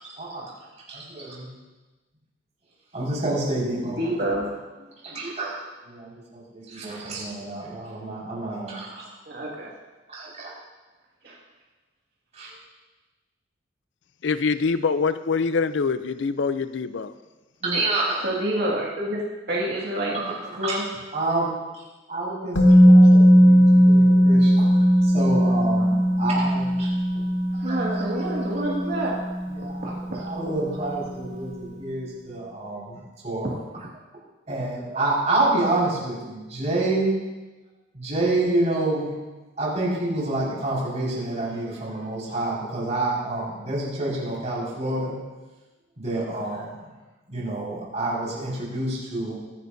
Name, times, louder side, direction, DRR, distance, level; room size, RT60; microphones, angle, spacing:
voice 1, 0.0-0.5 0.9-1.5 2.9-4.3 5.0-5.6 5.8-9.1 10.1-10.5 12.3-12.5 17.6-18.2 20.1-20.8 21.1-21.8 22.1-27.2 27.6-28.6 29.5-33.5 34.5-37.1 37.9-39.1 39.6-45.2 46.0-46.8 47.3-49.4, right 2 dB, 35° right, -5 dB, 5.2 m, -28 dB
voice 2, 4.0-4.5 9.3-9.7 11.2-11.4 17.6-17.8 18.2-19.2 19.5-20.2 20.6-20.8 27.6-29.2 29.8-30.3, right 1 dB, 55° right, -4 dB, 2.1 m, -27 dB
voice 3, 14.2-17.2, left 4 dB, 65° left, 12 dB, 0.5 m, -24 dB
Musical instrument, 22.6-30.5 30.7-30.9, equal, 80° left, 2.1 m, -18 dB
23.5 x 11.0 x 2.7 m, 1.2 s
head